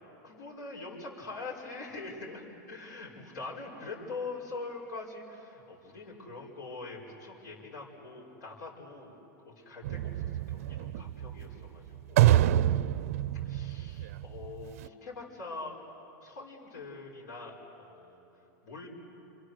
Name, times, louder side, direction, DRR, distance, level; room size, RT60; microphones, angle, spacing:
voice 1, 0.2-9.1 9.5-12.2 13.4-15.9 16.2-18.9, left 3 dB, 85° left, -3 dB, 5.3 m, -43 dB
sound 1, 9.8-14.9, right 13 dB, 50° right, 0.5 m, -27 dB
29.0 x 27.0 x 6.6 m, 3.0 s
supercardioid pair, 180°, 10 cm